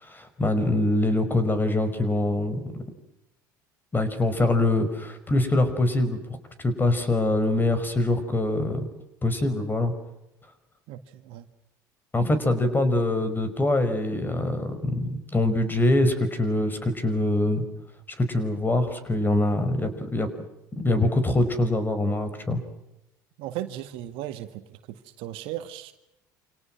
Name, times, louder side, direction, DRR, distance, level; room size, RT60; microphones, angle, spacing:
voice 1, 0.0-2.7 3.9-6.2 6.6-8.9 9.2-9.9 12.1-17.6 18.2-20.3 20.8-22.6, left 2 dB, 20° left, 11 dB, 5.5 m, -24 dB
voice 2, 10.9-11.5 23.4-25.9, right 13 dB, 60° right, 10 dB, 1.9 m, -36 dB
28.5 x 27.0 x 6.2 m, 0.90 s
hypercardioid pair, 65°, 10 cm